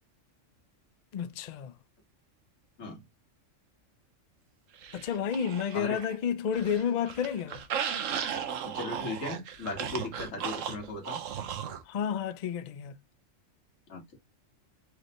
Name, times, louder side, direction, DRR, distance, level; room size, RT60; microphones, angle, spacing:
voice 1, 1.1-1.7 4.9-7.6 11.9-13.0, left 7 dB, 65° left, 0.4 m, -31 dB
sound 1, 4.8-6.2 6.5-11.8, right 8 dB, 80° right, 1.1 m, -36 dB
voice 2, 8.6-11.2 13.9-14.0, left 3 dB, 80° left, 1.9 m, -37 dB
4.8 x 3.2 x 3.0 m
omnidirectional pair, 1.3 m